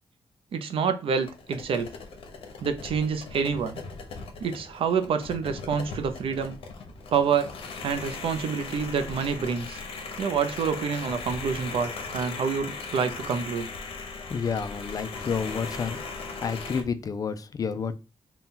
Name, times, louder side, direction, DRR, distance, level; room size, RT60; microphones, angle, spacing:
voice 1, 0.5-1.9 2.6-3.8 4.4-6.6 7.1-7.5 7.8-9.8 10.2-13.7, right 6 dB, 75° right, 9 dB, 0.6 m, -27 dB
sound 1, 1.2-16.8, left 4 dB, 80° left, 0.8 m, -39 dB
voice 2, 14.3-16.0 16.4-17.9, left 6 dB, 40° left, 10 dB, 0.4 m, -30 dB
4.1 x 2.3 x 3.7 m, 0.29 s
wide cardioid pair, 160°, 9 cm